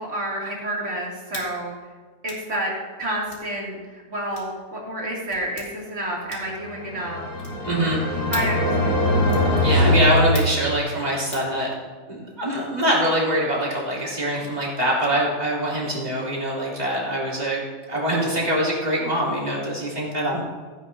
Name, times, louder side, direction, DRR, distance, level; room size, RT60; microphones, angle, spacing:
voice 1, 0.0-1.7 2.2-2.7 3.0-7.3 8.3-9.1, right 1 dB, 55° right, -3 dB, 2.9 m, -29 dB
sound 1, 1.3-1.5 2.2-2.5 3.3-3.5 4.3-4.6 5.3-5.7 6.3-6.6 7.4-7.7 8.3-8.6 9.3-9.5 10.3-10.6 11.3-11.5, left 2 dB, 85° left, 2.7 m, -38 dB
sound 2, 6.6-11.0, left 1 dB, 40° left, 1.9 m, -22 dB
voice 2, 7.6-8.2 9.6-11.7 12.1-17.6 17.9-20.4, right 1 dB, 30° right, -6 dB, 3.3 m, -24 dB
16.0 x 10.0 x 2.7 m, 1.4 s
omnidirectional pair, 1.5 m